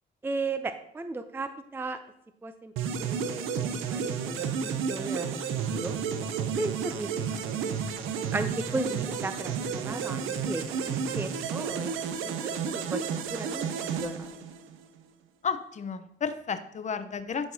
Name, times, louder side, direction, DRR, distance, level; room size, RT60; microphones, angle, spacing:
voice 1, 0.2-2.0 2.4-2.7 3.0-3.3 3.6-5.3 5.7-6.0 6.6-7.4 8.3-13.0 13.3-14.3, right 3 dB, 10° right, 9 dB, 0.4 m, -35 dB
sound 1, 2.8-14.8, right 6 dB, 85° right, 0.6 m, -32 dB
voice 2, 15.4-17.5, left 6 dB, 35° left, 10 dB, 0.7 m, -32 dB
11.5 x 4.6 x 2.7 m, 0.76 s
cardioid pair, 90°, 20 cm